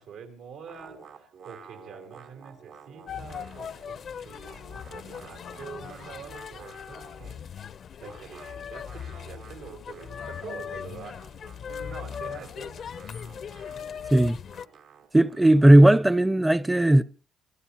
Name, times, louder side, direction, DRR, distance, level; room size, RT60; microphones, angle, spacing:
voice 1, 0.0-7.4 8.0-11.1 11.7-12.9, right 6 dB, 90° right, 4.8 m, -45 dB
sound 1, 0.7-4.0 4.2-7.5 8.0-16.0, right 6 dB, 70° right, 4.6 m, -51 dB
sound 2, 3.1-14.7, left 7 dB, 60° left, 0.7 m, -39 dB
voice 2, 15.1-17.0, right 1 dB, 10° right, 0.7 m, -17 dB
26.0 x 15.5 x 3.0 m
cardioid pair, 90°, 0 cm